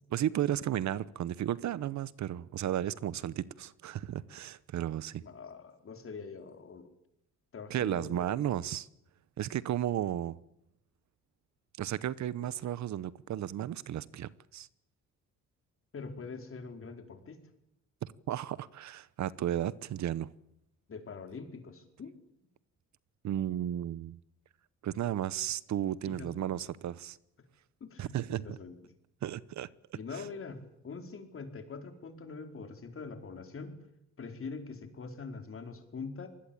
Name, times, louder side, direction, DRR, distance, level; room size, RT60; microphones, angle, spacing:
voice 1, 0.1-5.2 7.7-8.9 9.4-10.4 11.8-14.7 18.3-20.3 23.2-24.2 24.8-27.2 28.0-28.6 29.2-30.2, right 11 dB, 65° right, 1.0 m, -34 dB
voice 2, 5.2-6.9 7.5-8.4 15.9-17.4 20.9-22.1 26.1-26.5 27.8-28.7 29.9-33.8 34.2-36.3, left 4 dB, 45° left, 4.6 m, -44 dB
26.0 x 20.5 x 8.9 m
cardioid pair, 90°, 30 cm